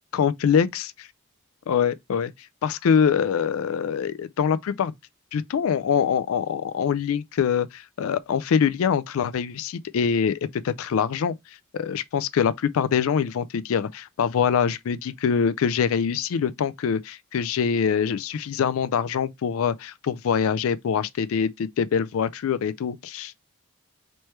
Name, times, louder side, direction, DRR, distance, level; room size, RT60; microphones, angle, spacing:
voice 1, 0.1-0.9 1.7-2.3 2.6-4.9 5.3-11.4 11.7-23.4, left 7 dB, 75° left, 0.4 m, -24 dB
3.2 x 3.2 x 4.3 m
head